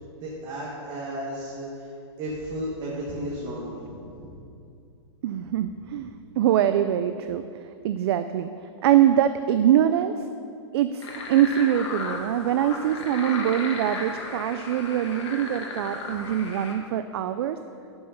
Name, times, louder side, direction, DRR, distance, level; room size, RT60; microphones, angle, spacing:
voice 1, 0.2-1.8 2.2-4.4, right 1 dB, 25° right, -5 dB, 1.5 m, -34 dB
voice 2, 5.2-7.4 7.8-8.5 8.8-10.2 10.7-17.6, right 10 dB, 60° right, 10 dB, 0.4 m, -23 dB
sound 1, 11.0-16.7, left 3 dB, 75° left, 1.8 m, -35 dB
11.0 x 5.5 x 5.7 m, 2.5 s
hypercardioid pair, 145°, 15 cm